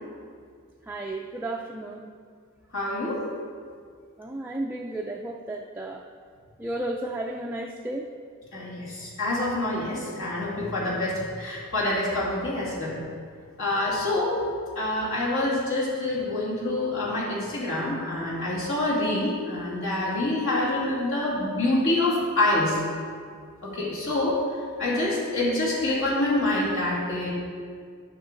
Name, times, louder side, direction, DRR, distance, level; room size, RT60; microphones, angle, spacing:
voice 1, 0.9-2.1 4.2-6.0 6.6-8.1, right 1 dB, 10° right, 0 dB, 0.4 m, -33 dB
voice 2, 2.7-3.2 8.5-13.0 13.6-14.4 14.8-22.8 23.6-24.4 24.8-27.3, left 2 dB, 65° left, -6 dB, 2.2 m, -26 dB
12.5 x 5.8 x 3.9 m, 2.1 s
head